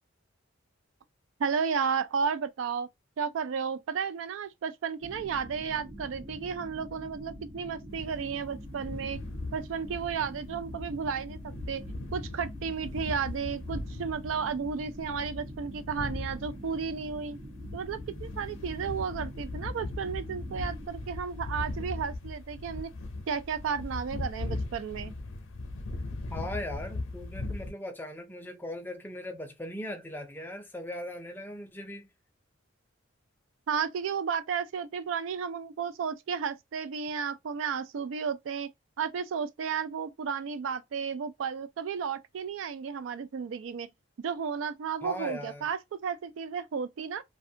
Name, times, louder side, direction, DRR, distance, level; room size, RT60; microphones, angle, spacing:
voice 1, 1.4-2.9 3.2-9.2 9.5-11.8 12.1-17.4 17.7-22.9 23.3-25.1 33.7-38.7 39.0-43.9 44.2-47.2, right 6 dB, 75° right, 0.3 m, -33 dB
sound 1, 5.0-20.9, equal, 90° right, 1.2 m, -45 dB
windy mountain plains, 7.9-27.7, left 2 dB, 80° left, 0.5 m, -39 dB
voice 2, 26.3-32.1 45.0-45.7, left 1 dB, 10° left, 0.5 m, -39 dB
2.5 x 2.2 x 2.7 m
head